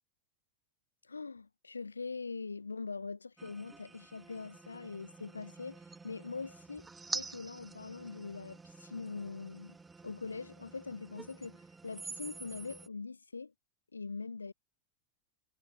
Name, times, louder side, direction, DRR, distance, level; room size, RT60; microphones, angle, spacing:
voice 1, 1.0-9.8 10.0-13.5 13.9-14.5, left 4 dB, 75° left, 0.8 m, -43 dB
sound 1, 3.4-12.9, right 4 dB, 10° right, 1.7 m, -47 dB
figure-of-eight pair, 90°, 0 cm